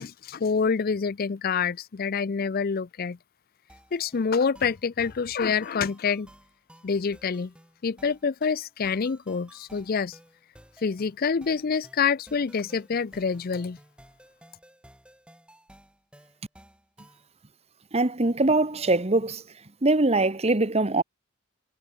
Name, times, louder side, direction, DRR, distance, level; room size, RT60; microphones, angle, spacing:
voice 1, 0.0-3.2 3.9-6.3 6.8-7.5 7.8-10.2 10.8-13.8, left 5 dB, 45° left, 0.4 m, -27 dB
sound 1, 3.7-17.3, equal, 5° right, 7.9 m, -55 dB
voice 2, 17.9-19.4 19.8-21.0, right 2 dB, 30° right, 1.2 m, -22 dB
head